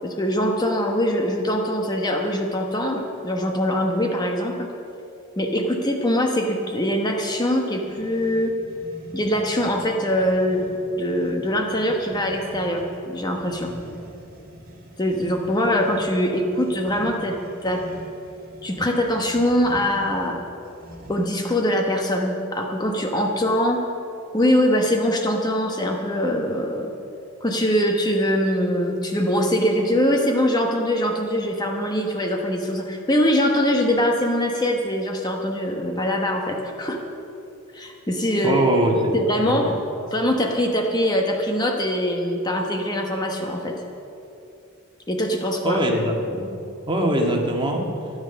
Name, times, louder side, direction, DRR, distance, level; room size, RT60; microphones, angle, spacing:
voice 1, 0.0-4.7 5.4-8.5 9.1-10.6 11.0-13.7 15.0-17.8 18.6-20.4 21.1-23.8 24.3-26.9 27.4-37.0 37.7-38.6 39.1-39.7 40.1-43.8 45.1-45.8, equal, 20° left, 2 dB, 1.1 m, -23 dB
sound 1, 7.7-21.5, equal, 45° right, 1.9 m, -43 dB
voice 2, 38.4-39.2 39.5-39.6 45.6-46.4 46.9-47.9, right 1 dB, 25° right, 1 dB, 1.7 m, -21 dB
13.5 x 10.5 x 6.9 m, 2.8 s
head